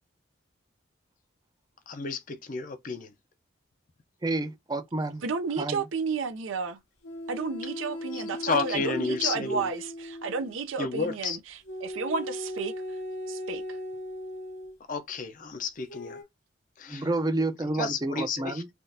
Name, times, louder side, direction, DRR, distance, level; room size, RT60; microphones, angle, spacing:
voice 1, 1.9-3.1 8.1-9.7 10.8-11.4 14.9-16.2 16.8-17.1 17.8-18.6, left 4 dB, 40° left, 0.5 m, -31 dB
voice 2, 4.2-5.2 5.6-5.8 16.9-18.7, right 2 dB, 20° right, 0.5 m, -29 dB
voice 3, 5.2-6.8 7.3-12.7 13.3-13.8, right 5 dB, 85° right, 0.5 m, -32 dB
sound 1, 7.0-10.5 11.7-14.8 15.9-16.2, left 1 dB, 90° left, 1.0 m, -38 dB
3.5 x 2.4 x 2.7 m
head